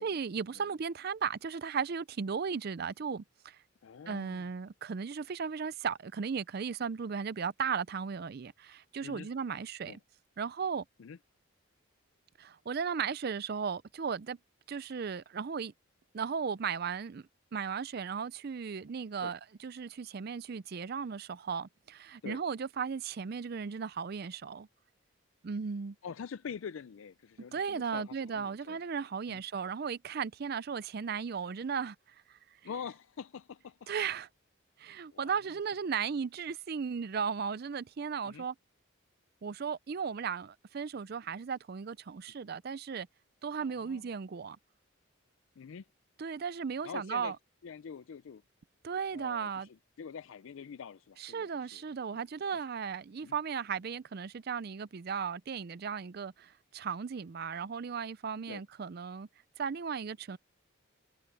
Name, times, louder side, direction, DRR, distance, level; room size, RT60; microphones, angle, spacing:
voice 1, 0.0-3.6 4.1-10.0 10.4-10.8 12.4-14.4 14.7-15.7 16.1-17.2 17.5-24.7 25.4-26.0 27.5-32.0 33.9-34.3 34.8-38.5 39.4-43.1 43.4-44.6 46.2-47.4 48.8-49.7 51.2-59.3 59.6-60.4, right 6 dB, 50° right, 0.4 m, -36 dB
voice 2, 3.8-4.5 9.0-9.3 9.9-10.0 11.0-11.2 19.2-19.3 22.2-22.4 26.0-28.8 29.3-29.4 32.6-33.9 35.1-35.4 38.2-38.4 43.6-44.1 45.6-45.9 46.8-47.3 47.6-48.4 49.1-51.8 52.1-52.2 53.2-53.3 58.5-58.6, left 6 dB, 70° left, 0.4 m, -45 dB
head